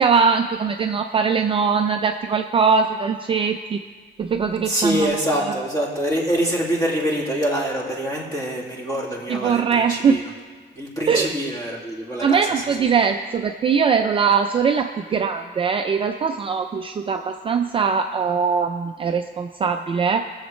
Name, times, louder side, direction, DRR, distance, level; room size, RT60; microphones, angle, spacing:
voice 1, 0.0-3.8 4.2-5.5 9.3-10.2 11.1-11.3 12.2-20.3, right 6 dB, 30° right, 5 dB, 0.3 m, -21 dB
voice 2, 4.7-10.2 10.7-12.9, equal, 20° left, -3 dB, 2.1 m, -25 dB
21.5 x 7.2 x 3.1 m, 1.5 s
wide cardioid pair, 175°, 19 cm